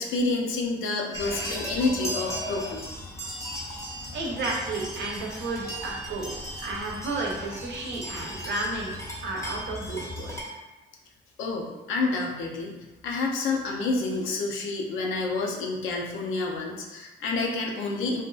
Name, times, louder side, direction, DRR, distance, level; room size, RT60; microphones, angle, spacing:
voice 1, 0.0-2.9 11.4-12.8 13.0-18.2, left 3 dB, 80° left, 0 dB, 0.5 m, -28 dB
sound 1, 1.1-10.4, equal, 15° left, 0.6 m, -36 dB
voice 2, 4.1-9.0 9.2-10.4, right 2 dB, 65° right, -2 dB, 0.7 m, -32 dB
2.5 x 2.2 x 2.3 m, 1.1 s
cardioid pair, 90°, 20 cm